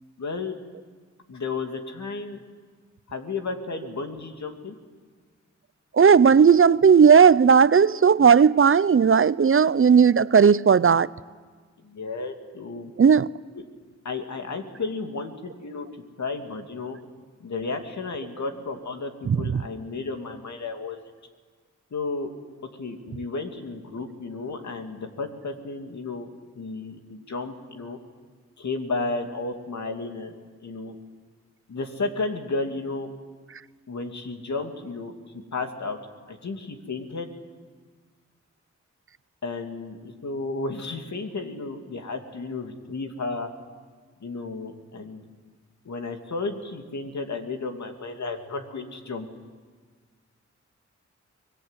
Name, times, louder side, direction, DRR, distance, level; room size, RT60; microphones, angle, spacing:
voice 1, 0.2-0.5 1.3-2.4 3.1-4.7 11.8-12.9 14.0-15.9 16.2-17.0 17.4-21.0 21.9-22.3 22.8-26.3 26.6-28.0 28.6-30.3 30.6-31.0 31.7-33.1 33.9-36.0 36.3-37.3 39.4-43.5 44.2-45.2 45.8-49.3, left 3 dB, 70° left, 2.6 m, -33 dB
voice 2, 5.9-11.1 13.0-13.3 19.3-19.6, right 6 dB, 45° right, 0.6 m, -16 dB
25.0 x 20.0 x 8.2 m
cardioid pair, 50°, 29 cm